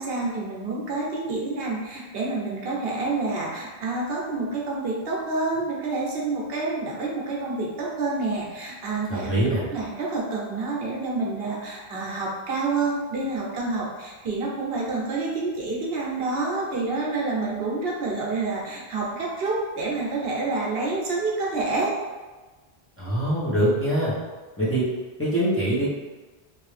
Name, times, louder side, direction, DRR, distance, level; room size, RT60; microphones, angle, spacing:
voice 1, 0.0-21.9, right 3 dB, 70° right, -3 dB, 0.9 m, -28 dB
voice 2, 9.1-9.6 23.0-24.1 24.6-24.8 25.2-25.9, right 1 dB, 15° left, -10 dB, 0.9 m, -23 dB
3.2 x 2.6 x 3.2 m, 1.3 s
omnidirectional pair, 1.0 m